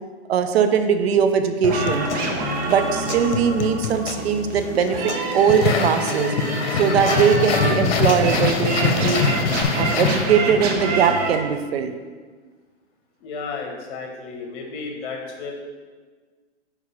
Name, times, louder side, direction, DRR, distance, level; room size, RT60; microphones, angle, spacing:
voice 1, 0.3-2.1 2.6-6.3 6.8-9.3 9.8-11.9, right 7 dB, 65° right, 8 dB, 0.7 m, -20 dB
Human voice / Acoustic guitar / Percussion, 1.6-9.6, left 5 dB, 85° left, 0.7 m, -32 dB
sound 1, 1.7-11.4, right 2 dB, 25° right, 0.8 m, -27 dB
sound 2, 5.5-10.7, left 5 dB, 65° left, 1.0 m, -23 dB
voice 2, 13.2-15.5, left 4 dB, 45° left, 1 dB, 1.5 m, -33 dB
4.9 x 4.8 x 5.8 m, 1.4 s
hypercardioid pair, 140°, 34 cm